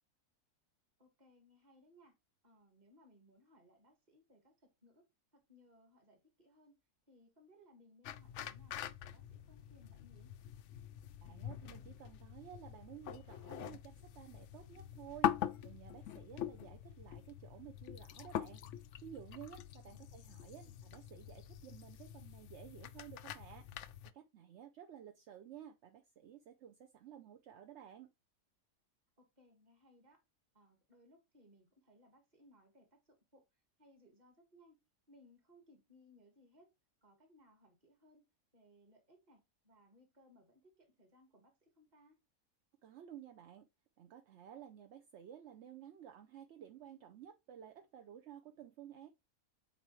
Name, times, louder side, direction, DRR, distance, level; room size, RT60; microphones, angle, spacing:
voice 1, 1.0-2.2 2.4-6.8 7.1-10.3 19.8-20.0 20.6-20.7 29.2-30.2 30.5-34.8 35.1-36.7 37.0-38.3 38.5-42.2, left 1 dB, 30° right, 1.6 m, -66 dB
sound 1, 8.0-24.1, left 11 dB, 65° left, 0.7 m, -44 dB
voice 2, 11.2-18.6 19.0-23.7 24.0-28.1 42.8-43.7 44.0-49.1, right 10 dB, 60° right, 0.8 m, -54 dB
8.2 x 4.2 x 3.1 m
omnidirectional pair, 1.6 m